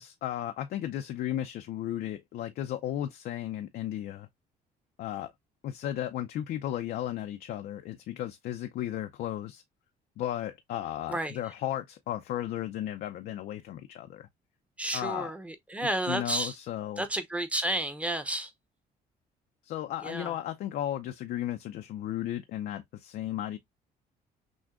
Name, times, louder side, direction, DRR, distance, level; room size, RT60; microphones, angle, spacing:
voice 1, 0.0-4.3 5.0-5.3 5.6-9.6 10.2-14.3 14.9-15.3 16.1-17.1 19.6-23.6, left 12 dB, 65° left, 0.5 m, -34 dB
voice 2, 14.8-16.6 17.0-18.5 20.0-20.3, right 1 dB, 10° right, 0.8 m, -31 dB
6.1 x 2.2 x 2.3 m
cardioid pair, 110°, 17 cm